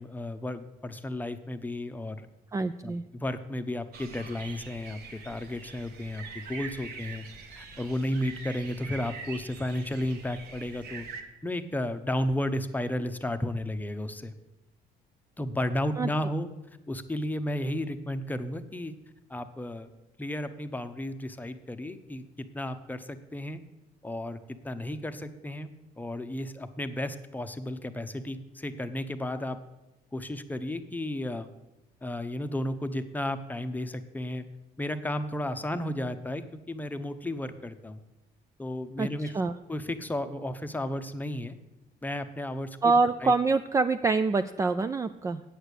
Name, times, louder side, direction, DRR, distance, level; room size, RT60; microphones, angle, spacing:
voice 1, 0.0-2.3 2.8-11.1 11.4-14.3 15.4-16.5 16.9-18.9 19.3-19.9 20.2-23.6 24.0-25.7 26.0-29.6 30.1-31.5 32.0-34.5 34.8-38.0 38.6-39.3 39.7-41.6 42.0-43.3, left 1 dB, 10° left, 9 dB, 0.8 m, -33 dB
voice 2, 2.5-3.0 16.0-16.1 39.0-39.1 39.3-39.5 42.8-45.4, right 4 dB, 20° right, 9 dB, 0.3 m, -25 dB
sound 1, 3.9-11.2, right 5 dB, 70° right, 1.4 m, -44 dB
8.9 x 6.7 x 8.2 m, 0.97 s
cardioid pair, 110°, 17 cm